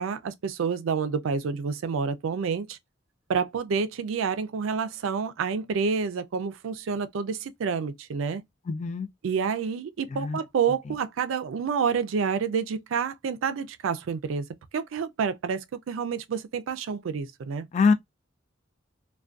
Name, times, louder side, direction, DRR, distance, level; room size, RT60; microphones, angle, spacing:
voice 1, 0.0-2.8 3.3-8.4 9.2-14.5 14.7-17.7, right 6 dB, 90° right, 0.4 m, -28 dB
voice 2, 8.7-9.1 10.1-10.4 17.7-17.9, left 4 dB, 35° left, 0.3 m, -23 dB
2.5 x 2.2 x 2.3 m
head